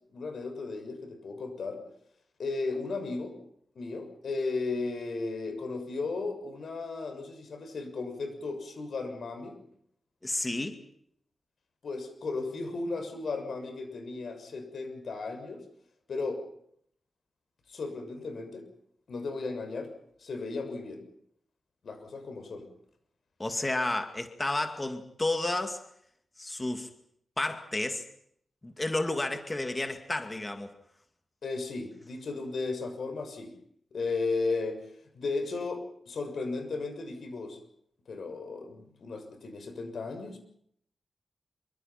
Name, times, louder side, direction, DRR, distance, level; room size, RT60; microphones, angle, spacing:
voice 1, 0.1-1.8 2.4-3.4 3.7-9.6 11.8-15.6 16.1-16.4 17.7-18.7 19.1-19.9 20.2-21.0 21.8-22.7 31.4-33.5 33.9-34.8 35.1-37.6 38.1-40.4, left 3 dB, 70° left, 6 dB, 6.6 m, -35 dB
voice 2, 10.2-10.8 23.4-25.8 26.4-26.9 27.4-28.0 28.6-30.7, left 2 dB, 20° left, 6 dB, 2.3 m, -31 dB
27.0 x 25.0 x 6.0 m, 0.69 s
wide cardioid pair, 150°, 0 cm